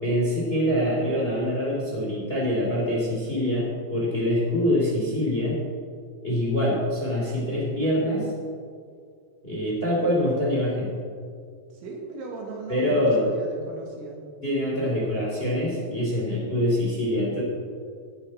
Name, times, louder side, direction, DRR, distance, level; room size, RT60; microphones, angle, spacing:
voice 1, 0.0-5.6 6.2-8.3 9.4-10.9 12.7-13.2 14.4-17.4, left 1 dB, 15° left, -4 dB, 2.9 m, -25 dB
voice 2, 11.7-14.2, right 3 dB, 80° right, -1 dB, 4.5 m, -37 dB
16.0 x 12.0 x 4.3 m, 2.2 s
omnidirectional pair, 5.3 m